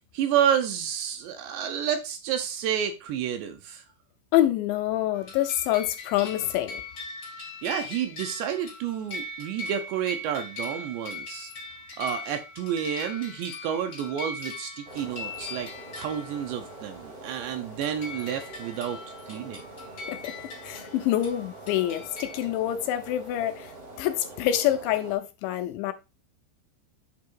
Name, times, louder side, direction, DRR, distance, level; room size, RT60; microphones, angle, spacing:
voice 1, 0.1-3.8 7.6-11.5 12.0-15.7 16.0-19.0 19.3-19.7, right 9 dB, 75° right, 2.7 m, -30 dB
voice 2, 4.3-6.8 20.1-20.4 20.6-25.9, left 12 dB, 80° left, 2.8 m, -26 dB
sound 1, 5.1-16.8 17.2-17.3 17.8-22.4, left 3 dB, 55° left, 1.0 m, -40 dB
sound 2, 14.8-25.1, right 2 dB, 40° right, 1.0 m, -44 dB
8.4 x 3.6 x 4.5 m
omnidirectional pair, 5.5 m